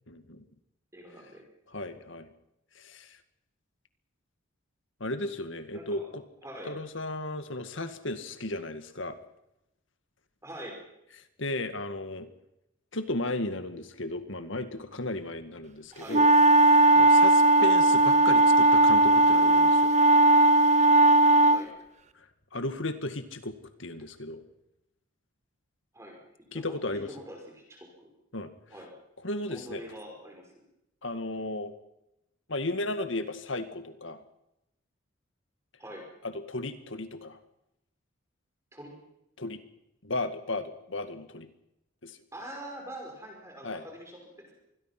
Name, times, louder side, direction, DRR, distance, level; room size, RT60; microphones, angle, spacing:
voice 1, 0.1-0.4 1.7-2.3 2.8-3.2 5.0-6.2 6.7-9.2 11.4-12.3 12.9-16.3 16.6-19.9 22.2-22.3 22.5-24.4 26.5-27.1 28.3-28.5 29.2-29.8 31.0-31.7 32.5-34.2 36.2-37.4 39.4-39.6 40.0-41.5 42.0-42.2 43.6-43.8, left 2 dB, 65° left, 9 dB, 2.0 m, -35 dB
voice 2, 0.9-1.4 5.7-6.1 6.4-6.7 10.4-10.8 15.9-16.2 17.5-17.8 21.5-21.7 24.0-24.1 25.9-26.2 26.5-27.9 28.7-29.0 29.5-30.5 35.8-36.1 38.7-39.0 42.3-44.5, right 1 dB, 15° right, 1 dB, 5.4 m, -44 dB
sound 1, 16.1-21.6, right 2 dB, 35° right, 0.9 m, -18 dB
26.5 x 21.5 x 6.0 m, 0.86 s
head